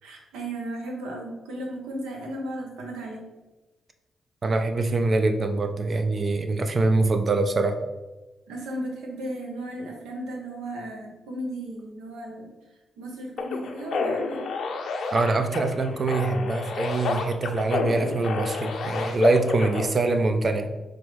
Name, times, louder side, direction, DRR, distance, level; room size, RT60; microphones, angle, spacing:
voice 1, 0.0-3.3 8.5-12.5 13.0-14.4, right 1 dB, 80° right, 0 dB, 0.8 m, -35 dB
voice 2, 4.4-7.8 15.1-20.7, right 3 dB, 45° right, 8 dB, 0.5 m, -24 dB
sound 1, 13.4-19.9, left 4 dB, 70° left, 0.5 m, -30 dB
4.4 x 2.6 x 3.2 m, 1.1 s
hypercardioid pair, 45°, 0 cm